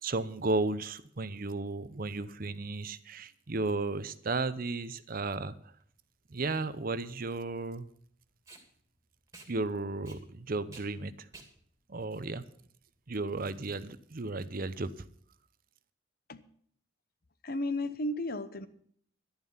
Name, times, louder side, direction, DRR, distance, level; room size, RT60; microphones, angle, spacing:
voice 1, 0.0-5.6 6.3-7.9 9.5-11.3 11.9-12.4 13.1-15.0, right 3 dB, 45° right, 15 dB, 0.7 m, -34 dB
Packing tape duct tape, 5.7-13.2, right 3 dB, 15° right, 2.4 m, -56 dB
voice 2, 17.4-18.7, left 1 dB, 50° left, 13 dB, 0.9 m, -33 dB
11.5 x 11.0 x 5.6 m, 0.63 s
head